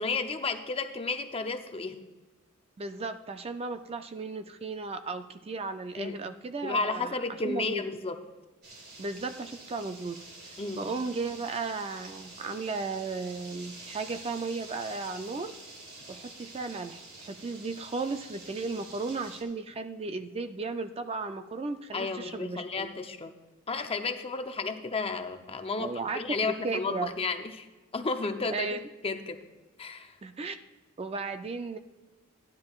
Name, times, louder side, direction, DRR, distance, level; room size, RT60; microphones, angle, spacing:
voice 1, 0.0-2.0 6.0-6.2 6.6-8.2 10.6-10.8 21.9-23.3 23.7-27.7 27.9-29.4 29.8-30.1, left 4 dB, 25° left, 7 dB, 0.6 m, -32 dB
voice 2, 2.8-7.8 9.0-10.2 10.5-15.5 16.1-22.9 25.8-26.2 26.6-27.1 28.5-28.8 30.2-30.6 31.0-31.8, right 4 dB, 30° right, 8 dB, 0.4 m, -35 dB
sound 1, 8.6-19.4, right 2 dB, 55° right, 3.0 m, -47 dB
14.5 x 10.5 x 2.4 m, 1.2 s
head